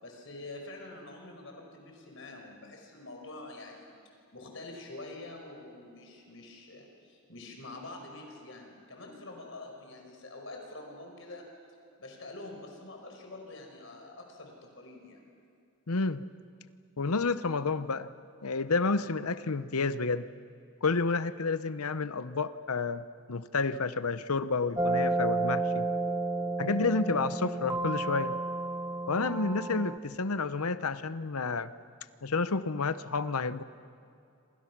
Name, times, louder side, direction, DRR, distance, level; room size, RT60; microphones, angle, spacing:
voice 1, 0.0-4.0 4.3-11.5 12.0-15.2, left 2 dB, 60° left, 2 dB, 5.1 m, -46 dB
voice 2, 15.9-16.2 17.0-18.1 18.4-20.3 20.8-23.0 23.3-25.9 26.6-28.3 29.1-31.7 32.2-33.6, left 4 dB, 85° left, 13 dB, 0.9 m, -30 dB
sound 1, 24.8-30.0, right 3 dB, 10° right, 0.7 m, -31 dB
27.5 x 27.0 x 6.1 m, 2.5 s
head